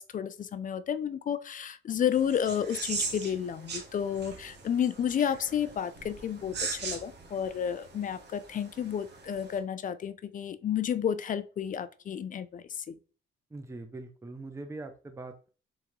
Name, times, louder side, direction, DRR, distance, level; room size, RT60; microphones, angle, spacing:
voice 1, 0.0-13.0, left 8 dB, 40° left, 0.4 m, -31 dB
sound 1, 2.1-9.6, right 4 dB, 60° right, 1.1 m, -40 dB
voice 2, 13.5-15.5, right 2 dB, 15° right, 0.6 m, -42 dB
3.7 x 3.6 x 3.1 m
cardioid pair, 90°, 20 cm